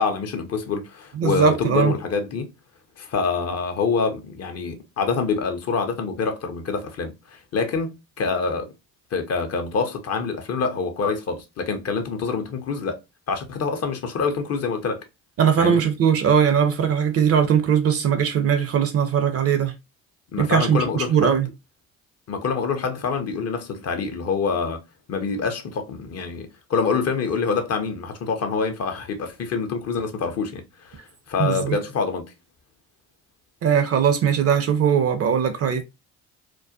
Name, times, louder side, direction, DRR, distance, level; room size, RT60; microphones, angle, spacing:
voice 1, 0.0-2.5 3.0-8.7 9.1-13.0 13.3-15.0 15.6-15.8 20.3-21.3 22.3-24.8 25.1-32.2, left 5 dB, 40° left, 0.6 m, -26 dB
voice 2, 1.1-1.9 15.4-19.7 20.4-21.5 31.4-31.8 33.6-35.8, right 7 dB, 35° right, 0.5 m, -20 dB
2.3 x 2.1 x 2.5 m
figure-of-eight pair, 50°, 40 cm